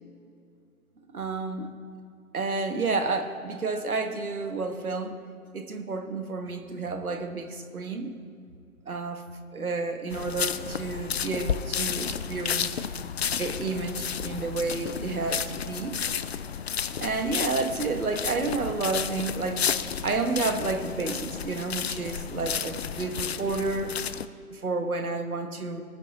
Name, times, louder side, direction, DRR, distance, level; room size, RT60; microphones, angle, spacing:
voice 1, 1.1-1.7 2.3-5.1 5.5-8.1 8.9-9.2 9.5-12.8 13.4-16.0 17.0-19.7 20.0-23.9 24.5-25.8, right 3 dB, 75° right, 6 dB, 1.5 m, -30 dB
sound 1, 10.1-24.3, left 7 dB, 45° left, 0.5 m, -32 dB
19.0 x 8.6 x 4.1 m, 2.4 s
figure-of-eight pair, 125°, 44 cm